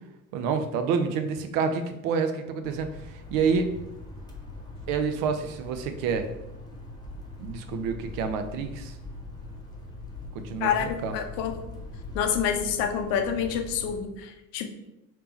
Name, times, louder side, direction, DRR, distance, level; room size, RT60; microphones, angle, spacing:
voice 1, 0.3-3.7 4.9-6.3 7.4-8.9 10.3-11.2, right 5 dB, 50° right, 7 dB, 0.6 m, -28 dB
sound 1, 2.6-14.0, left 2 dB, 10° left, 0.9 m, -42 dB
voice 2, 10.6-11.5 12.1-14.7, left 8 dB, 55° left, 5 dB, 0.7 m, -27 dB
3.4 x 2.9 x 4.3 m, 0.92 s
figure-of-eight pair, 60°, 42 cm